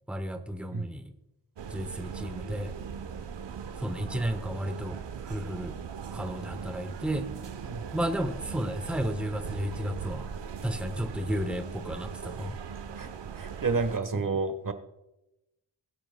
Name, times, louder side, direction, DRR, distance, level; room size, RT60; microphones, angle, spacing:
voice 1, 0.1-1.0 1.7-2.7 3.8-5.8 6.1-7.3 7.9-10.3 10.6-12.6 14.1-14.2, equal, 5° right, 8 dB, 1.2 m, -33 dB
sound 1, 1.6-14.0, right 7 dB, 70° right, 1.0 m, -39 dB
voice 2, 13.4-14.7, right 4 dB, 45° right, 9 dB, 1.3 m, -29 dB
21.0 x 8.8 x 2.3 m, 0.92 s
cardioid pair, 45°, 45 cm